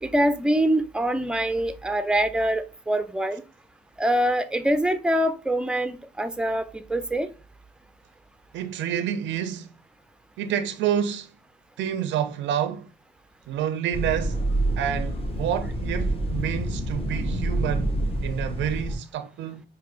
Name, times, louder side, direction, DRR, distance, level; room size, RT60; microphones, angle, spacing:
voice 1, 0.0-3.4 4.0-7.3, right 1 dB, 5° right, 0.4 m, -24 dB
voice 2, 8.5-9.7 10.4-11.4 11.8-12.9 13.5-14.4 14.8-19.6, right 9 dB, 70° right, 0.4 m, -28 dB
sound 1, 13.9-19.0, right 1 dB, 30° left, 1.0 m, -27 dB
4.8 x 2.7 x 2.3 m
cardioid pair, 90°, 20 cm